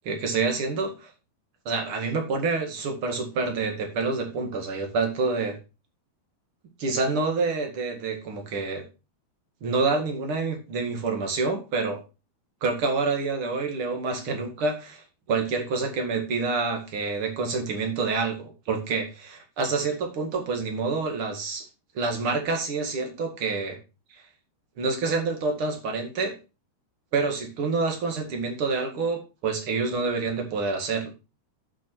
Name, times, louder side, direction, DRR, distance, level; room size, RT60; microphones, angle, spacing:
voice 1, 0.0-1.1 1.7-5.6 6.8-8.9 9.6-12.0 12.6-21.7 21.9-23.8 24.1-24.2 24.8-26.4 27.1-31.1, right 4 dB, 40° right, 3 dB, 2.2 m, -27 dB
11.0 x 6.2 x 4.5 m, 0.30 s
omnidirectional pair, 4.7 m